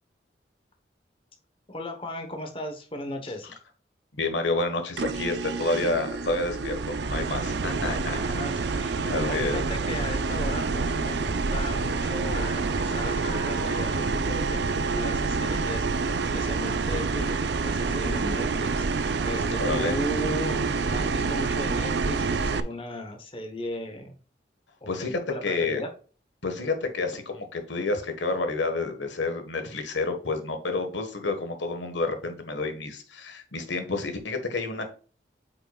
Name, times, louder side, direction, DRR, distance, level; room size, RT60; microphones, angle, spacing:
voice 1, 1.7-3.6 7.8-24.2 24.8-25.9, left 1 dB, 30° left, 4 dB, 1.2 m, -36 dB
voice 2, 4.1-8.2 9.0-9.6 19.6-20.0 24.9-25.8 26.4-34.8, left 3 dB, 90° left, 6 dB, 1.6 m, -29 dB
sound 1, 5.0-22.6, right 4 dB, 70° right, 0.5 m, -27 dB
sound 2, 11.6-15.9, left 1 dB, 55° left, 3.5 m, -43 dB
8.6 x 5.8 x 2.4 m, 0.39 s
head